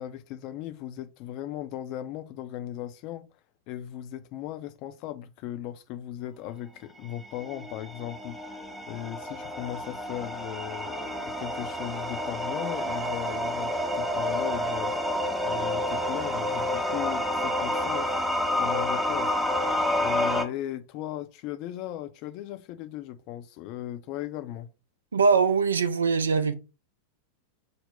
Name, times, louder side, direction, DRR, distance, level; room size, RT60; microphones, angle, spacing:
voice 1, 0.0-3.3 3.7-18.1 18.5-19.7 20.0-24.7, left 12 dB, 45° left, 0.4 m, -37 dB
sound 1, 7.2-20.4, left 1 dB, 5° right, 0.6 m, -29 dB
voice 2, 25.1-26.5, right 5 dB, 70° right, 0.4 m, -22 dB
5.3 x 2.1 x 3.7 m
figure-of-eight pair, 90°, 0 cm